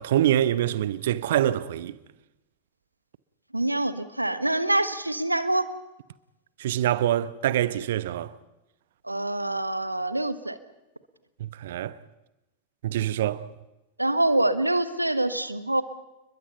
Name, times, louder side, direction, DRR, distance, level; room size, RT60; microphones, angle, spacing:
voice 1, 0.0-2.0 6.6-8.3 11.4-12.0 12.8-13.5, right 12 dB, 55° right, 1.0 m, -25 dB
voice 2, 3.5-5.7 9.0-10.6 14.0-15.8, right 1 dB, 85° right, 1.2 m, -25 dB
29.5 x 21.5 x 5.6 m
figure-of-eight pair, 90°, 0 cm